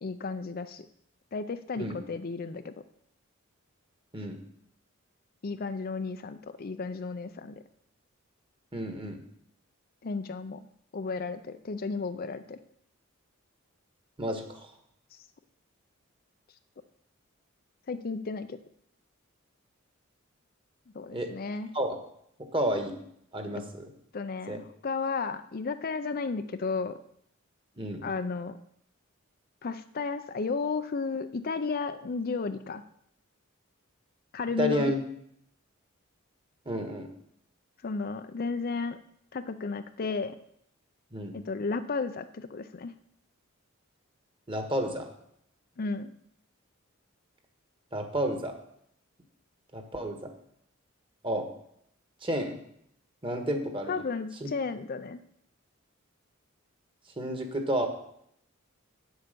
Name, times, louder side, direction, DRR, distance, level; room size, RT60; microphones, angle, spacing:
voice 1, 0.0-0.9 1.3-2.7 5.4-7.6 10.0-10.6 10.9-12.6 17.9-18.6 20.9-21.7 24.1-27.0 28.0-28.6 29.6-32.8 34.3-34.9 37.8-39.0 39.3-40.3 41.3-42.9 45.8-46.1 53.9-55.2, left 4 dB, 45° left, 10 dB, 0.5 m, -33 dB
voice 2, 8.7-9.2 14.2-14.7 21.1-21.3 21.7-22.0 22.5-22.9 23.3-23.9 24.5-24.6 27.8-28.0 34.6-35.0 36.6-37.1 41.1-41.4 44.5-45.1 47.9-48.5 49.7-50.3 51.2-51.5 52.2-52.6 53.2-54.0 54.4-54.5 57.2-57.9, equal, 25° right, 5 dB, 1.5 m, -30 dB
8.8 x 8.0 x 6.8 m, 0.71 s
head